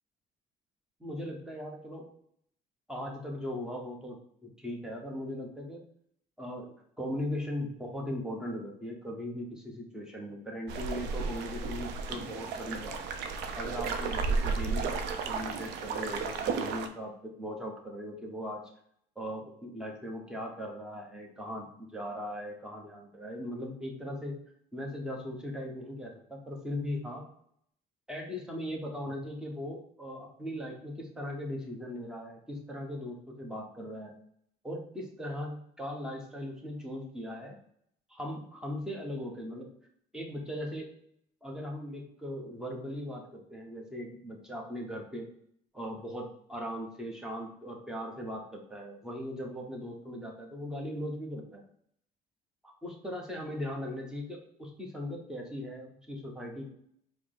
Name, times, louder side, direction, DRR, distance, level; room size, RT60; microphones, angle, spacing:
voice 1, 1.0-2.1 2.9-5.8 6.4-13.1 13.5-14.9 15.3-18.6 19.2-24.4 24.7-27.3 28.1-34.1 34.6-37.6 38.1-39.7 40.1-40.9 41.4-45.3 45.7-51.6 52.6-56.7, equal, 5° right, 0 dB, 0.9 m, -39 dB
sound 1, 10.7-16.9, right 4 dB, 80° right, 0.5 m, -33 dB
4.7 x 2.0 x 3.7 m, 0.69 s
cardioid pair, 110°, 17 cm